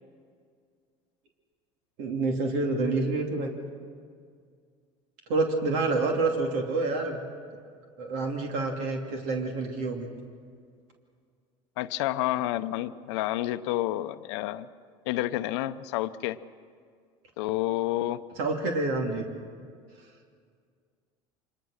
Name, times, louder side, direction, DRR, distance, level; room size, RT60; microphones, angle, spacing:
voice 1, 2.0-3.5 5.3-7.3 8.0-10.1 18.4-19.3, right 3 dB, 75° right, 2 dB, 2.9 m, -28 dB
voice 2, 11.8-14.7 15.1-16.4 17.4-18.2, left 15 dB, 85° left, 11 dB, 0.7 m, -29 dB
25.0 x 21.5 x 6.5 m, 2.1 s
supercardioid pair, 105°, 14 cm